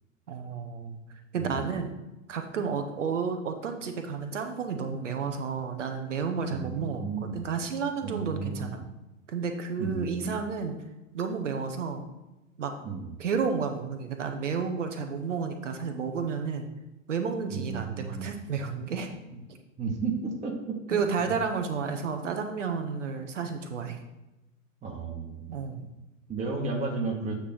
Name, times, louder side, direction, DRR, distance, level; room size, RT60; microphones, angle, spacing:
voice 1, 0.3-1.0 1.3-1.9 2.3-7.1 7.3-8.8 9.3-10.8 11.1-12.0 12.6-12.7 13.2-16.7 17.1-19.1 20.9-24.0 25.5-25.9, right 5 dB, 65° right, 6 dB, 1.1 m, -31 dB
voice 2, 1.4-1.7 6.4-7.4 8.0-8.8 9.8-10.3 12.8-13.1 17.5-18.3 19.3-19.4 19.8-21.3 24.8-25.5 26.3-27.3, right 4 dB, 15° right, 2 dB, 1.2 m, -33 dB
8.5 x 3.2 x 5.4 m, 1.0 s
figure-of-eight pair, 100°, 41 cm